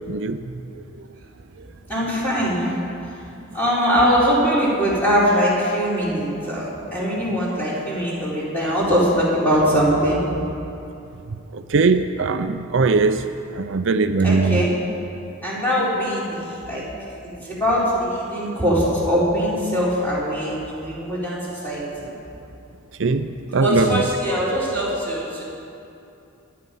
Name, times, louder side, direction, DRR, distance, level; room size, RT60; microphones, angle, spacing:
voice 1, 0.1-0.4 11.5-13.2 13.5-14.6 23.0-23.8, right 4 dB, 60° right, 9 dB, 0.5 m, -20 dB
voice 2, 1.9-2.7 3.5-10.3 14.2-14.7 15.4-16.8 17.4-21.8 23.5-25.4, equal, 10° left, -8 dB, 4.5 m, -21 dB
25.5 x 9.6 x 5.4 m, 2.7 s
head